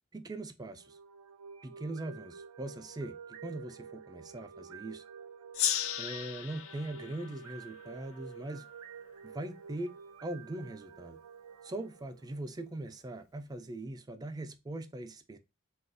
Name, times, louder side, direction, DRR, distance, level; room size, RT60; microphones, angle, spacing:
voice 1, 0.1-1.0 1.6-5.0 6.0-8.7 9.2-11.2 11.6-15.4, right 1 dB, 20° right, 0.4 m, -41 dB
sound 1, 0.7-12.8, right 6 dB, 85° right, 0.4 m, -50 dB
Gong, 5.5-8.7, left 11 dB, 70° left, 0.4 m, -36 dB
3.5 x 2.3 x 2.5 m
head